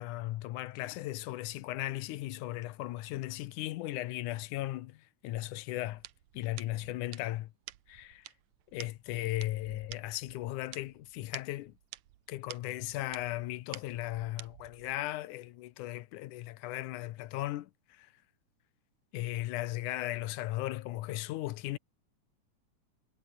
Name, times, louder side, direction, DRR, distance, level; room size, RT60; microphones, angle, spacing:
voice 1, 0.0-6.0 6.3-7.5 7.9-8.3 8.7-11.7 12.3-18.1 19.1-21.8, left 16 dB, 80° left, 2.3 m, -37 dB
sound 1, 5.9-15.0, right 15 dB, 70° right, 2.0 m, -50 dB
omnidirectional pair, 3.7 m